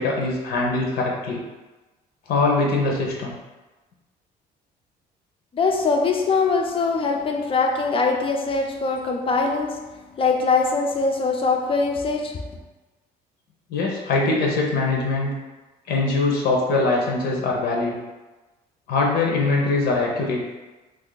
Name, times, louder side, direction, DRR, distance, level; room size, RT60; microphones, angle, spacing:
voice 1, 0.0-1.4 2.3-3.4 13.7-15.3 15.9-17.9 18.9-20.4, left 3 dB, 70° left, 0.7 m, -22 dB
voice 2, 5.5-9.8 10.2-12.4, left 4 dB, 30° left, 0.5 m, -22 dB
2.5 x 2.5 x 3.8 m
cardioid pair, 110°, 17 cm